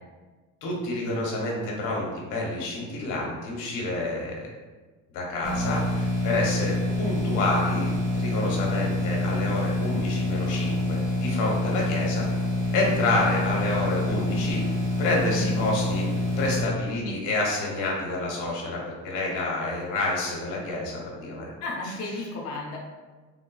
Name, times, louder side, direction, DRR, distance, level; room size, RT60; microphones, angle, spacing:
voice 1, 0.6-4.5 5.1-12.2 12.7-14.6 15.0-16.1 16.4-21.5 21.8-22.3, left 2 dB, 90° left, -2 dB, 0.8 m, -28 dB
sound 1, 5.4-16.6, left 1 dB, 75° right, 0.8 m, -26 dB
voice 2, 21.6-22.8, left 2 dB, 55° left, -2 dB, 0.5 m, -34 dB
3.2 x 2.1 x 2.2 m, 1.3 s
cardioid pair, 135°, 31 cm